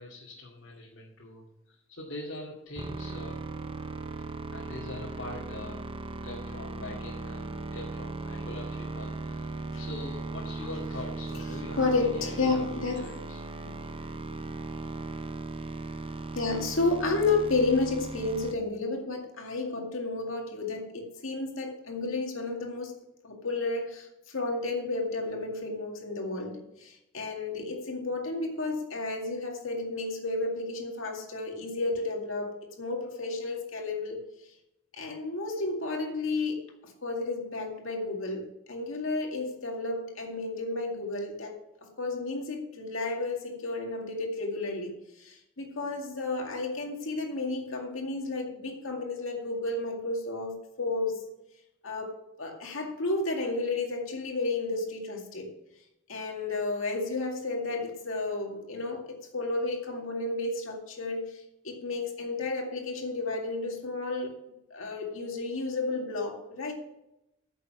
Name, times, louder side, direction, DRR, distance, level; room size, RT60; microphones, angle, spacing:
voice 1, 0.0-3.5 4.5-5.9 6.2-13.4 14.8-14.9, left 1 dB, 70° left, -5 dB, 2.2 m, -43 dB
sound 1, 2.8-18.5, right 3 dB, 25° right, 0.6 m, -38 dB
voice 2, 11.8-13.0 16.3-23.0 23.2-32.5 32.8-34.2 34.9-41.5 41.8-51.2 51.8-55.5 56.1-61.3 61.6-64.4 64.7-66.7, left 3 dB, 90° left, 2 dB, 2.1 m, -32 dB
9.4 x 6.9 x 6.0 m, 0.87 s
head